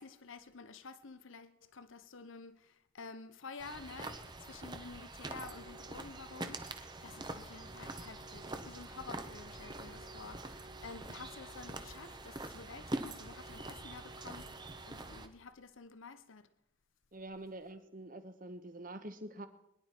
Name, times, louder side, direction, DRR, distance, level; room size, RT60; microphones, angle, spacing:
voice 1, 0.0-16.5, left 4 dB, 75° left, 0.8 m, -50 dB
sound 1, 3.6-15.3, right 2 dB, 20° right, 0.9 m, -45 dB
voice 2, 17.1-19.5, right 1 dB, 40° right, 1.2 m, -46 dB
22.0 x 11.0 x 4.5 m
head